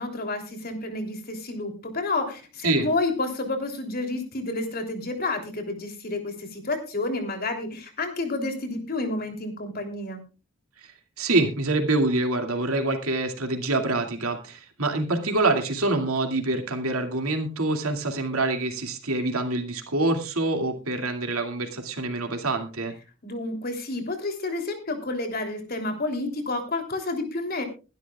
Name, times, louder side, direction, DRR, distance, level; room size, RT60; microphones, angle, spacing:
voice 1, 0.0-10.2 23.2-27.6, left 2 dB, 45° left, 5 dB, 3.2 m, -30 dB
voice 2, 11.2-22.9, right 2 dB, 90° right, 4 dB, 2.5 m, -26 dB
21.5 x 11.5 x 2.4 m, 0.32 s
head